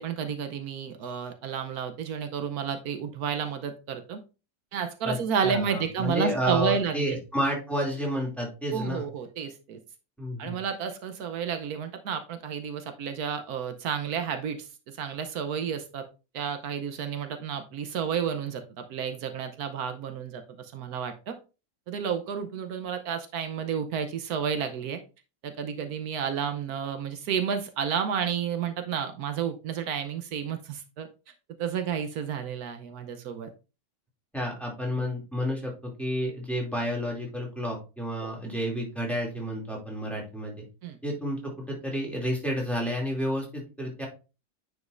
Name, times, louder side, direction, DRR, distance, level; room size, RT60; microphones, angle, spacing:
voice 1, 0.0-4.2 4.7-7.2 8.7-9.8 10.4-16.0 16.3-21.4 21.9-25.0 25.4-31.1 31.6-33.5 38.2-38.3 40.8-41.0, right 7 dB, 80° right, 8 dB, 1.2 m, -31 dB
voice 2, 5.4-9.0 10.2-10.6 34.3-40.6 41.0-44.1, equal, ahead, -2 dB, 2.4 m, -30 dB
9.4 x 5.1 x 2.5 m, 0.31 s
omnidirectional pair, 1.6 m